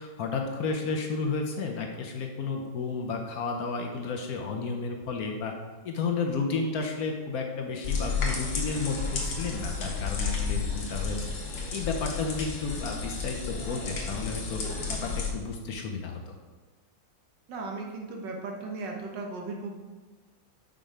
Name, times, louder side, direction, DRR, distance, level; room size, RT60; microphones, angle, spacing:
voice 1, 0.0-5.5 5.8-11.2 11.7-14.6 14.9-16.2, left 4 dB, 65° left, 2 dB, 1.0 m, -32 dB
sound 1, 7.8-15.3, left 4 dB, 80° left, 2.0 m, -32 dB
voice 2, 17.5-19.7, right 3 dB, 70° right, 1 dB, 1.7 m, -36 dB
5.9 x 5.2 x 4.9 m, 1.3 s
omnidirectional pair, 2.0 m